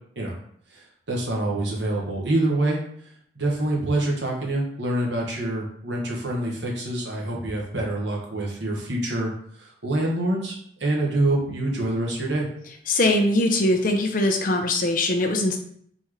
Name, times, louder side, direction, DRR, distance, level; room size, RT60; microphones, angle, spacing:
voice 1, 0.7-9.3 9.6-12.5, right 1 dB, 70° right, -2 dB, 1.2 m, -26 dB
voice 2, 12.9-15.6, left 1 dB, 45° left, 4 dB, 0.6 m, -21 dB
4.2 x 3.6 x 3.1 m, 0.64 s
head